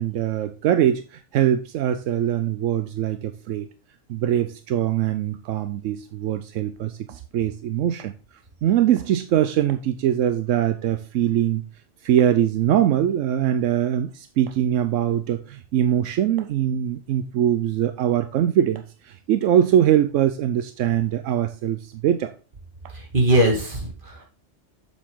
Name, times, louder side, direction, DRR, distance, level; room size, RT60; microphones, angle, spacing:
voice 1, 0.0-3.7 4.1-8.1 8.6-11.6 12.0-22.3, right 10 dB, 85° right, 10 dB, 0.9 m, -22 dB
voice 2, 22.9-24.2, right 1 dB, 40° right, -1 dB, 2.5 m, -21 dB
7.2 x 7.1 x 3.7 m, 0.34 s
omnidirectional pair, 1.3 m